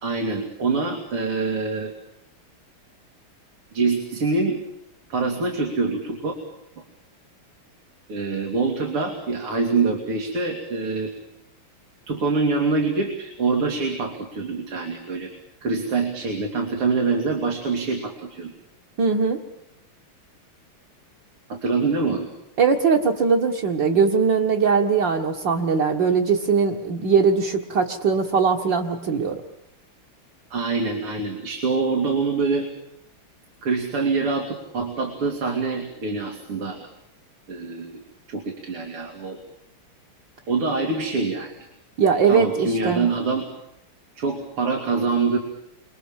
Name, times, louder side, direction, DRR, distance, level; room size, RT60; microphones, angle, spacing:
voice 1, 0.0-1.9 3.7-4.6 5.1-6.3 6.8-6.9 8.1-11.1 12.1-15.3 15.6-18.5 21.5-22.3 30.5-32.7 33.6-36.8 37.5-38.0 38.3-39.4 40.5-41.5 42.0-43.5 44.2-45.4, right 4 dB, 85° right, 3 dB, 4.0 m, -25 dB
voice 2, 19.0-19.4 22.6-29.4 42.0-43.1, right 5 dB, 55° right, 0 dB, 2.4 m, -20 dB
30.0 x 25.5 x 7.5 m, 0.81 s
omnidirectional pair, 2.4 m